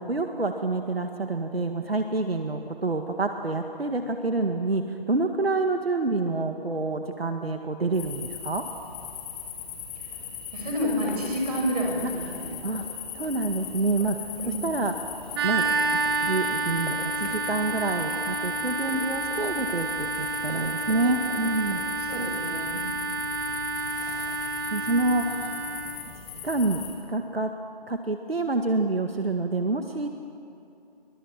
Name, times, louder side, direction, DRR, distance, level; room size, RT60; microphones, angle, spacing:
voice 1, 0.0-8.6 12.0-12.8 13.2-14.2 14.4-15.1 15.4-15.6 16.2-21.8 24.7-25.4 26.4-26.8 27.1-27.5 27.9-30.1, right 2 dB, 85° right, 5 dB, 2.1 m, -27 dB
sound 1, 7.9-26.9, left 8 dB, 5° left, 1.2 m, -38 dB
voice 2, 10.5-12.5 14.4-14.7 22.0-23.1, equal, 40° right, 1 dB, 6.7 m, -30 dB
Run, 10.7-12.1 12.3-22.3, left 2 dB, 45° left, 5.3 m, -44 dB
sound 2, 15.3-26.0, right 4 dB, 25° right, 2.4 m, -29 dB
25.0 x 24.0 x 7.4 m, 2.7 s
figure-of-eight pair, 160°, 30 cm